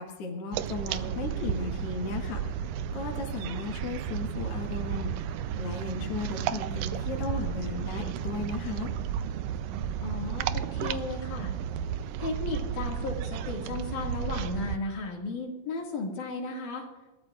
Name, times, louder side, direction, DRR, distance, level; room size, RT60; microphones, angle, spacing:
voice 1, 0.0-2.7 2.9-8.9, left 4 dB, 55° left, 0 dB, 2.3 m, -36 dB
sound 1, 0.5-14.8, right 8 dB, 85° right, 1.5 m, -33 dB
voice 2, 10.0-11.5 12.2-16.9, left 3 dB, 75° left, 0 dB, 3.6 m, -35 dB
28.5 x 13.5 x 2.4 m, 1.2 s
omnidirectional pair, 3.6 m